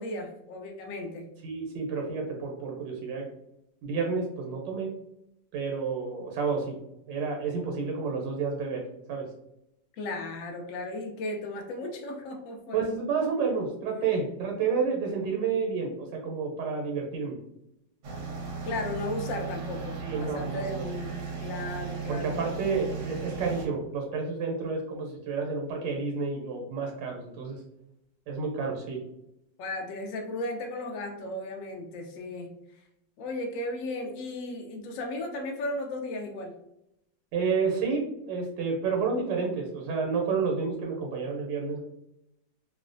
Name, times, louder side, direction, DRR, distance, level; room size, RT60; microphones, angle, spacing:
voice 1, 0.0-1.3 10.0-12.8 18.6-22.4 29.6-32.8 33.2-36.6, left 2 dB, 85° left, 3 dB, 0.7 m, -35 dB
voice 2, 1.4-3.3 3.8-4.9 5.5-6.7 7.1-8.8 9.1-9.3 12.7-17.4 20.0-20.9 22.1-27.6 28.3-29.0 37.3-41.8, right 5 dB, 90° right, 1 dB, 1.3 m, -30 dB
sound 1, 18.0-23.7, right 5 dB, 70° right, 0.8 m, -36 dB
3.0 x 2.0 x 2.5 m, 0.81 s
omnidirectional pair, 1.9 m